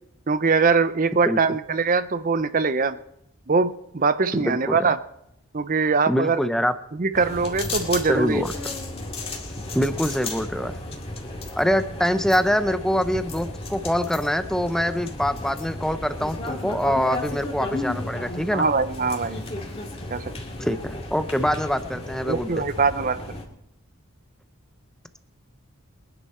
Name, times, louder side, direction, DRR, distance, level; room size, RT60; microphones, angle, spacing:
voice 1, 0.3-3.0 3.5-5.0 5.5-6.4 6.9-8.4 18.5-19.4 20.1-20.3 22.3-23.4, right 4 dB, 40° right, 13 dB, 0.6 m, -22 dB
voice 2, 4.4-4.8 6.1-6.7 8.1-8.5 9.7-10.7 11.6-18.7 20.6-22.6, equal, ahead, 10 dB, 0.6 m, -24 dB
sound 1, 7.1-23.4, left 2 dB, 25° left, 2.2 m, -34 dB
23.0 x 10.0 x 4.3 m, 0.78 s
head